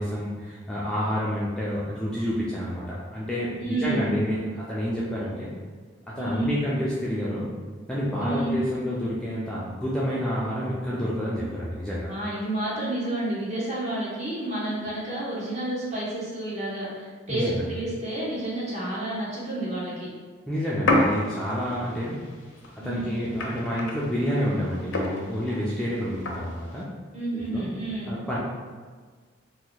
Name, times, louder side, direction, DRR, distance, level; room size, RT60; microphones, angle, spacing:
voice 1, 0.0-5.5 6.1-7.5 7.9-12.1 17.3-17.7 20.5-22.2 22.7-26.9 27.3-27.7 28.1-28.4, equal, 5° left, -8 dB, 0.3 m, -29 dB
voice 2, 3.6-4.1 6.2-6.6 8.2-8.6 12.1-20.1 22.8-23.2 27.1-28.2, right 1 dB, 35° right, -7 dB, 0.9 m, -30 dB
sound 1, 20.9-26.8, left 1 dB, 75° left, 0.5 m, -31 dB
2.8 x 2.2 x 3.9 m, 1.5 s
head